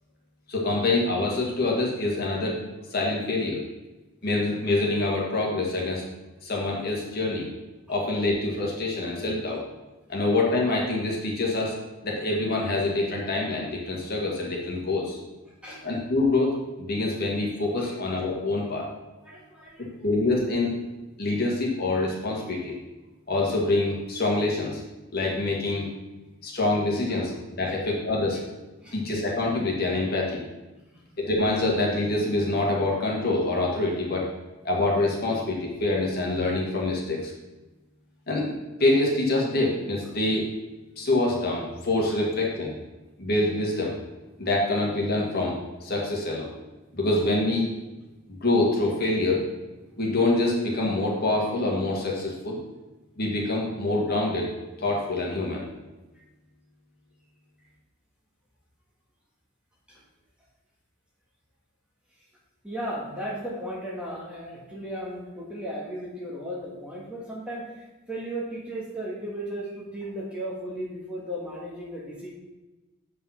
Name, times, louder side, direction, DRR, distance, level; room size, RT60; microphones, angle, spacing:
voice 1, 0.5-2.6 2.9-3.6 4.2-6.0 6.4-7.5 7.9-9.6 10.1-11.7 12.0-15.2 15.8-16.5 16.8-18.9 19.8-20.7 21.2-22.8 23.3-24.8 25.1-25.9 26.4-28.4 28.9-30.4 31.2-34.3 34.6-37.3 38.3-38.5 38.8-40.4 41.0-42.7 43.2-43.9 44.4-45.5 45.8-46.5 46.9-47.7 48.4-49.4 50.0-52.6 53.2-54.5 54.8-55.6, left 2 dB, 45° left, -2 dB, 1.8 m, -25 dB
voice 2, 19.2-20.0 27.6-27.8 28.8-29.0 42.1-42.2 56.1-56.2 59.9-60.0 62.6-72.3, right 1 dB, 5° right, -5 dB, 1.6 m, -36 dB
7.6 x 5.5 x 5.7 m, 1.1 s
head